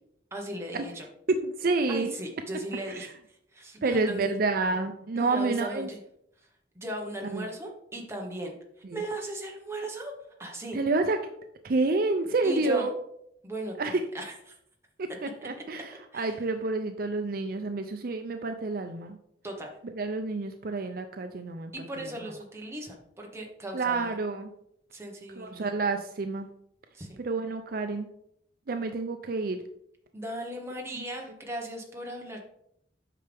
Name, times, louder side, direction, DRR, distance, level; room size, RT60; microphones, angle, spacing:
voice 1, 0.3-1.1 1.9-4.3 5.2-6.0 6.7-8.6 8.9-10.1 10.4-10.8 12.4-12.9 13.4-14.6 16.1-16.4 19.4-19.8 21.7-24.2 24.9-25.7 26.9-27.1 30.1-32.4, right 1 dB, 15° right, 1 dB, 1.2 m, -37 dB
voice 2, 1.3-2.1 3.0-3.1 3.8-5.9 7.3-7.5 8.9-9.0 10.7-11.2 11.6-12.9 13.8-14.0 15.0-19.2 20.0-21.7 22.0-22.1 23.7-24.5 25.4-26.5 27.2-28.1 28.7-29.6, right 3 dB, 55° right, 7 dB, 0.5 m, -29 dB
8.4 x 5.7 x 3.5 m, 0.75 s
head